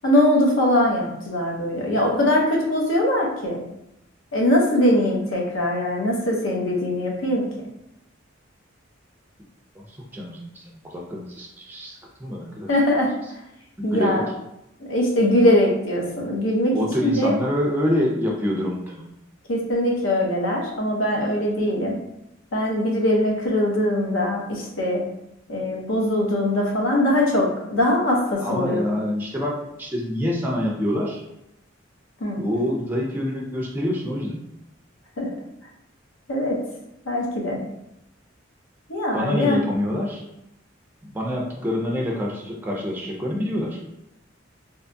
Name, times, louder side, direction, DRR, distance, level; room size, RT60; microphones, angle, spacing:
voice 1, 0.0-3.6 4.3-7.5 12.7-13.1 13.8-14.3 14.8-17.3 19.5-22.0 22.5-25.0 25.5-28.8 32.2-32.4 35.2-35.3 36.3-36.6 37.1-37.6 38.9-39.6, left 1 dB, 90° left, -1 dB, 0.7 m, -21 dB
voice 2, 9.8-12.7 13.8-14.2 16.7-19.0 28.4-31.2 32.4-34.4 39.1-40.2 41.0-43.8, left 1 dB, 10° right, -2 dB, 0.3 m, -26 dB
2.7 x 2.2 x 2.5 m, 0.83 s
head